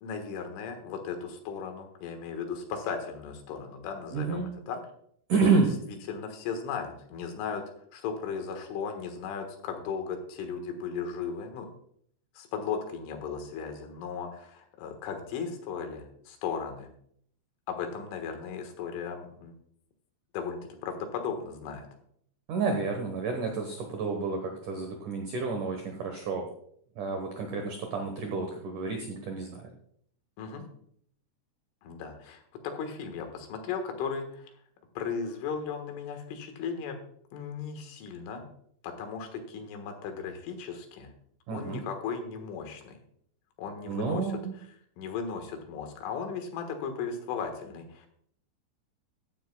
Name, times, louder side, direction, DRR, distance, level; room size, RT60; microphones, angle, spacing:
voice 1, 0.0-4.8 6.1-7.6 7.9-11.7 12.4-16.9 17.7-19.5 20.3-21.9 30.4-30.7 31.8-34.5 35.0-37.0 37.3-38.5 38.8-41.1 41.5-43.0 43.6-44.4 45.0-48.1, left 6 dB, 85° left, 5 dB, 3.9 m, -36 dB
voice 2, 4.1-4.5 5.3-5.7 22.5-26.5 27.0-29.6 41.5-41.8 43.9-44.5, right 4 dB, 75° right, 3 dB, 1.8 m, -29 dB
15.0 x 11.0 x 2.3 m, 0.66 s
omnidirectional pair, 5.5 m